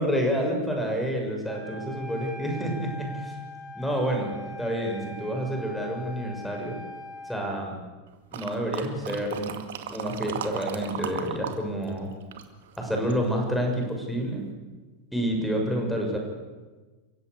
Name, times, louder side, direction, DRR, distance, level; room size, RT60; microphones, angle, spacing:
voice 1, 0.0-3.4 3.7-6.8 7.2-7.8 8.3-9.5 9.9-12.1 12.8-14.5 15.1-16.2, equal, 5° left, 2 dB, 6.7 m, -28 dB
Wind instrument woodwind instrument, 1.5-7.4, left 2 dB, 20° left, 6.0 m, -41 dB
sound 1, 8.3-11.6 11.8-13.3 13.8-13.9, right 9 dB, 55° right, 2.2 m, -36 dB
29.0 x 16.0 x 8.3 m, 1.3 s
figure-of-eight pair, 90°, 0 cm